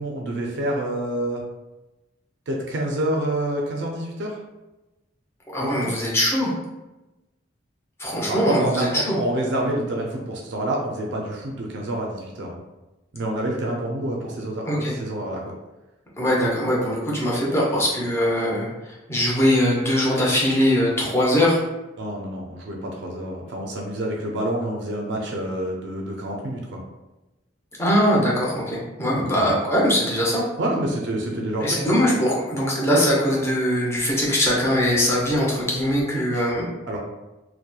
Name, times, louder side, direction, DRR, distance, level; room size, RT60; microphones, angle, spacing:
voice 1, 0.0-1.4 2.5-4.4 5.6-5.9 8.3-12.6 13.1-15.4 22.0-26.8 29.1-29.5 30.6-31.7 36.1-36.4 36.9-37.0, right 1 dB, 65° right, -1 dB, 0.4 m, -28 dB
voice 2, 5.5-6.5 8.0-9.2 14.7-14.9 16.2-21.6 27.8-30.4 31.6-36.7, equal, 15° left, -5 dB, 0.6 m, -21 dB
2.8 x 2.1 x 2.2 m, 1.0 s
head